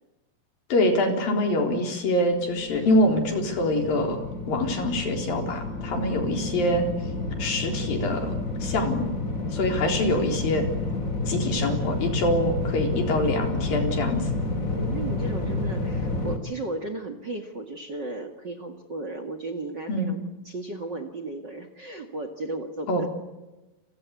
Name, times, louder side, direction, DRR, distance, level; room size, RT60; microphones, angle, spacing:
voice 1, 0.7-4.2 4.5-6.8 7.4-8.4 8.6-9.1 9.5-10.6 11.3-14.3 19.9-20.1 22.9-23.1, left 1 dB, 85° left, 4 dB, 5.7 m, -25 dB
sound 1, 2.3-16.4, left 2 dB, 25° left, 3.0 m, -30 dB
voice 2, 6.0-6.3 12.9-13.2 14.7-23.1, right 2 dB, 35° right, 9 dB, 2.1 m, -35 dB
29.5 x 24.0 x 8.4 m, 1.1 s
omnidirectional pair, 4.0 m